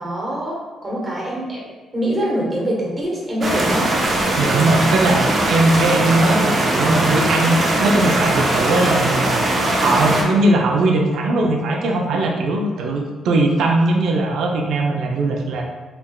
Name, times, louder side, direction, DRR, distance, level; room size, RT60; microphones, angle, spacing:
voice 1, 0.0-3.9, equal, 25° right, -4 dB, 1.3 m, -24 dB
sound 1, 3.4-10.2, right 1 dB, 40° right, 0.7 m, -20 dB
voice 2, 4.4-9.4 9.8-15.6, right 2 dB, 75° right, 1 dB, 0.5 m, -19 dB
3.7 x 3.4 x 2.3 m, 1.3 s
cardioid pair, 90°, 0 cm